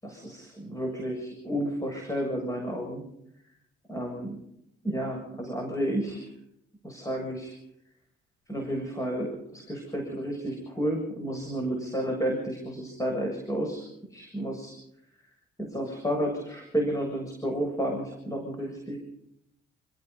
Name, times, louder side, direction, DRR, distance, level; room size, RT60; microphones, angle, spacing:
voice 1, 0.0-3.0 3.9-4.4 4.8-6.2 6.8-7.6 8.5-13.9 14.1-14.7 15.6-19.0, equal, 15° left, 1 dB, 7.5 m, -31 dB
28.5 x 17.0 x 5.5 m, 0.75 s
cardioid pair, 90°, 20 cm